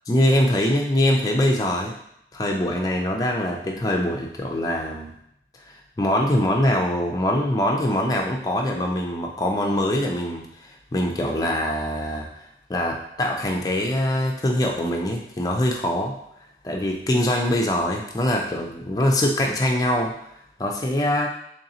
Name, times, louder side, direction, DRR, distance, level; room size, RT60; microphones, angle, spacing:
voice 1, 0.1-1.9 2.3-5.1 5.7-12.4 12.7-16.2 16.6-20.3 20.6-21.3, left 1 dB, 20° left, 0 dB, 0.3 m, -23 dB
3.8 x 3.2 x 2.7 m, 0.74 s
head